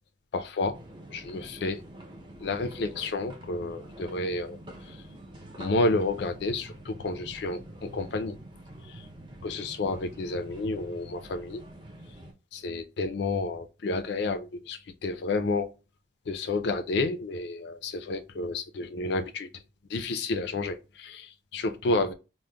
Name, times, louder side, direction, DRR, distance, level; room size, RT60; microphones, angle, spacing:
voice 1, 0.3-0.8 1.1-1.8 2.4-4.6 5.6-8.3 9.4-11.6 12.5-15.7 16.3-19.5 19.9-22.1, left 3 dB, 60° left, 0.4 m, -30 dB
sound 1, 0.7-12.3, right 1 dB, 25° right, 0.5 m, -46 dB
4.9 x 2.0 x 2.2 m
head